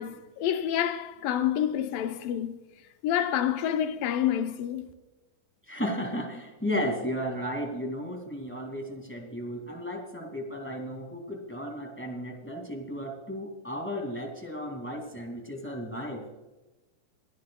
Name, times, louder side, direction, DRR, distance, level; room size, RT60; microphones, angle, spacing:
voice 1, 0.0-2.6 3.0-4.9, left 10 dB, 80° left, 2.5 m, -28 dB
voice 2, 5.7-16.3, equal, 5° left, 1.2 m, -34 dB
23.5 x 13.0 x 2.3 m
omnidirectional pair, 4.1 m